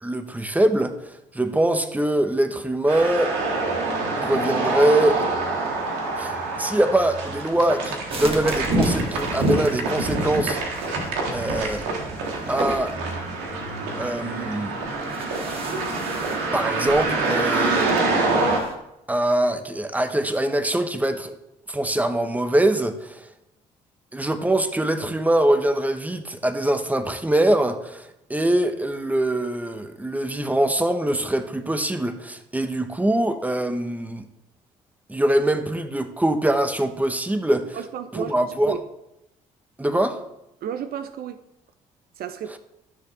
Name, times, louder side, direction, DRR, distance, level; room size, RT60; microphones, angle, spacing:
voice 1, 0.0-0.9 1.3-3.3 4.2-5.2 6.2-10.6 11.3-11.8 12.5-12.9 14.0-14.8 16.5-17.9 19.1-21.3 21.7-23.3 24.1-34.2 35.1-37.7 38.1-38.8 39.8-40.2, right 1 dB, 10° right, 1.1 m, -23 dB
sound 1, 2.9-18.6, right 2 dB, 85° right, 1.8 m, -26 dB
sound 2, 8.1-18.8, right 2 dB, 35° right, 1.9 m, -38 dB
voice 2, 37.7-38.8 40.6-41.4 42.2-42.6, right 8 dB, 60° right, 0.6 m, -32 dB
13.5 x 6.5 x 3.3 m
hypercardioid pair, 55°, 17 cm